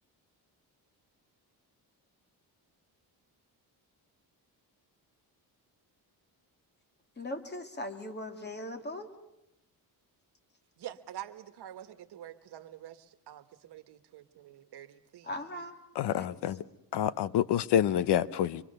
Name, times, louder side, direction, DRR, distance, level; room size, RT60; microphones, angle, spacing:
voice 1, 7.2-9.1 15.2-15.8 16.1-16.3, left 1 dB, 25° left, 2.5 m, -39 dB
voice 2, 10.8-15.3, right 11 dB, 75° right, 1.4 m, -47 dB
voice 3, 16.0-16.6 16.9-18.6, left 10 dB, 85° left, 0.8 m, -27 dB
25.0 x 24.0 x 6.7 m
cardioid pair, 110°, 40 cm